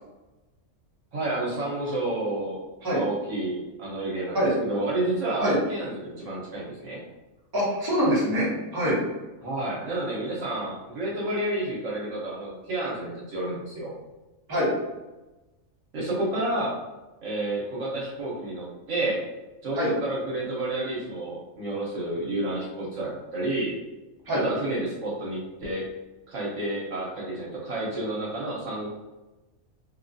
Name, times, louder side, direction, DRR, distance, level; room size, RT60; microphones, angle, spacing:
voice 1, 1.1-7.0 9.4-13.9 15.9-16.8 17.2-19.2 19.6-23.7 24.3-25.9 26.3-28.9, right 2 dB, 70° right, -5 dB, 1.1 m, -30 dB
voice 2, 7.5-9.0 14.5-14.7 19.7-19.9 24.3-24.4, equal, 20° right, -8 dB, 0.9 m, -24 dB
2.7 x 2.3 x 2.5 m, 1.1 s
omnidirectional pair, 1.4 m